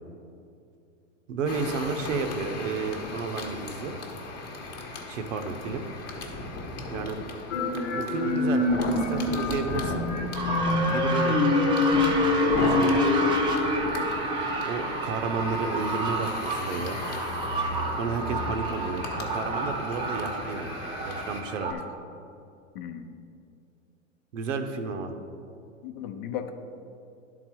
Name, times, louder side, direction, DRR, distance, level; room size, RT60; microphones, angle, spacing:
voice 1, 1.3-4.0 5.1-5.8 6.9-7.2 7.9-8.7 8.9-10.0 10.9-11.4 12.4-13.3 14.6-17.0 18.0-20.8 21.0-21.7 24.3-25.1, right 4 dB, 75° right, 7 dB, 0.9 m, -32 dB
sound 1, 1.5-21.4, left 2 dB, 25° left, 1.0 m, -36 dB
sound 2, 7.5-15.2, left 3 dB, 80° left, 1.1 m, -26 dB
sound 3, 10.3-21.7, right 3 dB, 15° right, 0.6 m, -31 dB
voice 2, 22.7-23.1 25.8-26.5, left 9 dB, 45° left, 7 dB, 0.7 m, -36 dB
11.0 x 4.0 x 4.6 m, 2.6 s
hypercardioid pair, 135°, 38 cm